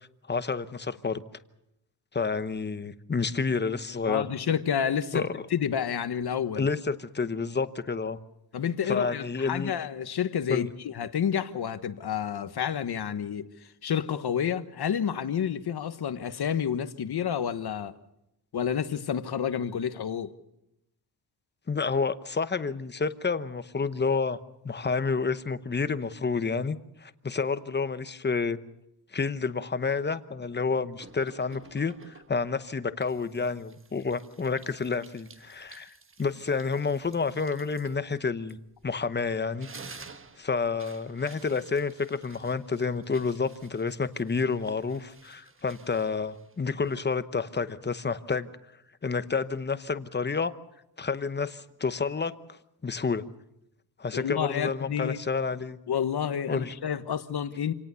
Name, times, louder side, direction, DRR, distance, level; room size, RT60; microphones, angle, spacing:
voice 1, 0.3-1.2 2.1-4.2 5.1-5.3 6.6-8.2 8.9-9.7 10.5-10.7 21.7-24.4 24.6-28.6 29.1-38.6 38.8-39.7 40.4-48.5 49.0-50.5 51.0-53.2 54.0-55.8 56.5-56.7, left 4 dB, 25° left, 0.9 m, -29 dB
voice 2, 4.1-6.7 8.5-13.5 13.8-17.9 18.5-20.3 54.1-55.2 55.9-57.7, left 8 dB, 65° left, 1.3 m, -29 dB
sound 1, 31.0-32.5 33.0-39.1 39.4-47.2, right 4 dB, 30° right, 1.3 m, -52 dB
27.5 x 18.5 x 6.9 m
wide cardioid pair, 180°, 41 cm